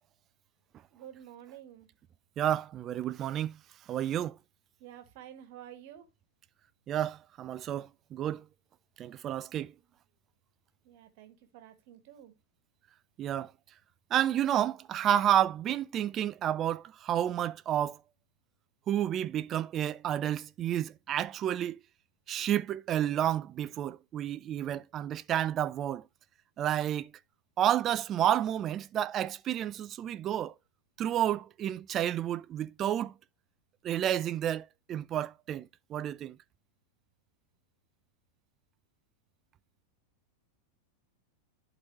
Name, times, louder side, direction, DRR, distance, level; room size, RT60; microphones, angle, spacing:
voice 1, 0.9-1.9 4.8-6.1 10.8-12.3, right 11 dB, 50° right, 1.4 m, -50 dB
voice 2, 2.4-3.6 3.9-4.4 6.9-8.5 9.0-9.7 13.2-13.5 14.1-18.0 18.9-21.8 22.3-26.0 26.6-27.1 27.6-30.5 31.0-33.1 33.8-36.4, right 11 dB, 30° right, 0.4 m, -30 dB
11.5 x 4.0 x 2.9 m
figure-of-eight pair, 90°, 0 cm